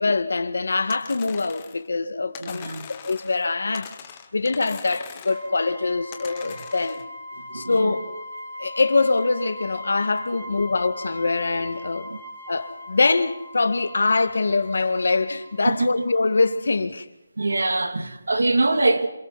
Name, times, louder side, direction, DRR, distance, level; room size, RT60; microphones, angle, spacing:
voice 1, 0.0-3.9 4.3-7.0 7.5-8.1 8.6-12.1 12.5-17.1, left 3 dB, 60° left, 1.7 m, -23 dB
sound 1, 0.9-1.9 2.3-3.5 3.7-5.5 6.1-7.0, left 8 dB, 15° left, 1.0 m, -42 dB
voice 2, 2.4-2.9 6.5-6.6 7.5-7.9 12.1-12.2 15.7-15.9 17.4-19.1, right 2 dB, 85° right, 2.6 m, -24 dB
sound 2, 5.3-16.7, left 1 dB, 40° right, 6.7 m, -40 dB
27.5 x 27.0 x 4.1 m
hypercardioid pair, 180°, 0 cm